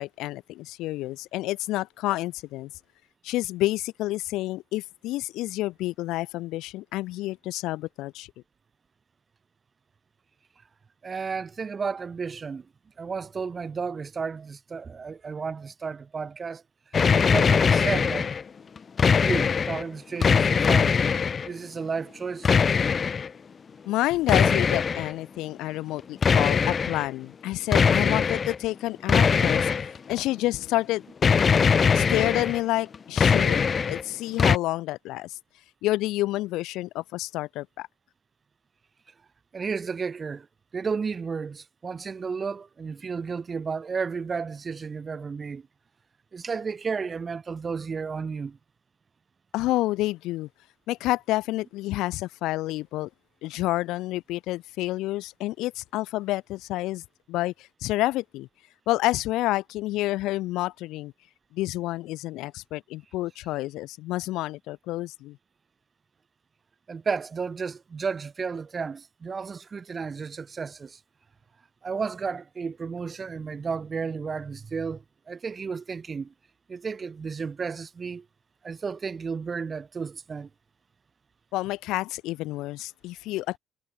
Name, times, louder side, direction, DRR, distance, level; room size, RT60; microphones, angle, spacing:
voice 1, 0.0-2.7 3.2-8.3 23.9-29.7 30.1-31.0 31.9-35.4 35.8-37.9 49.5-50.5 50.9-53.1 53.4-58.5 58.9-61.1 61.5-65.4 81.5-83.6, left 17 dB, 75° left, 2.5 m, -29 dB
voice 2, 11.0-12.7 13.0-16.6 17.2-18.3 19.2-21.0 21.4-22.5 39.5-40.5 40.7-45.7 46.3-48.6 66.9-71.0 71.8-76.3 76.7-78.3 78.6-80.5, right 5 dB, 20° right, 7.4 m, -32 dB
sound 1, 16.9-18.4 18.8-19.8 20.2-21.5 22.4-23.3 24.3-25.1 26.2-27.1 27.7-28.6 29.1-30.2 31.2-32.6 32.9-34.0 34.4-34.6, left 6 dB, 25° left, 2.5 m, -21 dB
cardioid pair, 175°, 0 cm